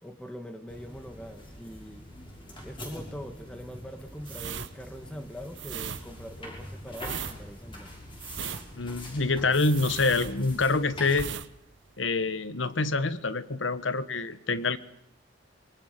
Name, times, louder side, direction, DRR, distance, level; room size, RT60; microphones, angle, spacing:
voice 1, 0.0-2.1 2.6-8.0, equal, 5° left, 8 dB, 1.6 m, -43 dB
sound 1, 0.7-11.3, left 1 dB, 25° left, 6.5 m, -44 dB
sound 2, 4.2-10.8 11.1-11.5 11.8-12.0, right 8 dB, 70° right, 1.0 m, -38 dB
voice 2, 8.7-11.3 12.0-14.8, left 3 dB, 75° left, 14 dB, 1.3 m, -26 dB
26.0 x 22.5 x 6.7 m, 0.78 s
head